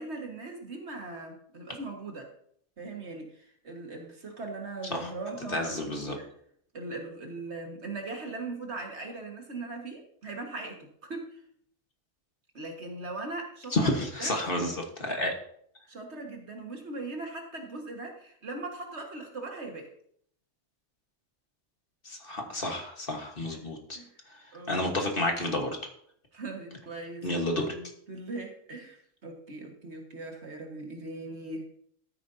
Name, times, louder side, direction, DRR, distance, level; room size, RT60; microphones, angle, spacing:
voice 1, 0.0-2.3 2.8-6.3 6.7-11.4 12.5-13.9 14.2-14.4 15.9-19.9 23.5-23.6 23.9-24.1 24.5-24.9 26.3-31.8, right 2 dB, 50° right, 2 dB, 1.8 m, -40 dB
voice 2, 5.5-6.2 13.7-15.3 22.0-24.0 24.7-25.7 27.2-27.7, left 1 dB, 40° left, 2 dB, 1.5 m, -30 dB
13.0 x 9.4 x 2.7 m, 0.65 s
omnidirectional pair, 1.5 m